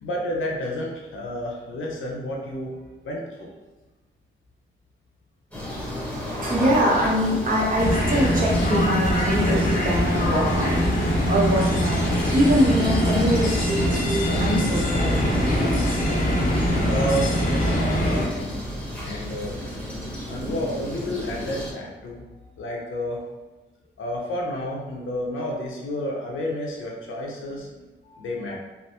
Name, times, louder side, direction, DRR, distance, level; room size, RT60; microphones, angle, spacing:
voice 1, 0.0-2.7 3.0-3.5 16.8-18.4 19.0-19.5 20.3-23.2 24.0-28.6, equal, 75° left, -2 dB, 0.7 m, -31 dB
sound 1, 5.5-21.7, equal, 5° left, 1.0 m, -33 dB
voice 2, 6.4-15.4, equal, 40° right, -4 dB, 0.9 m, -23 dB
sound 2, 7.8-18.2, equal, 40° left, 0.7 m, -23 dB
3.3 x 2.1 x 2.8 m, 1.2 s
cardioid pair, 95°, 21 cm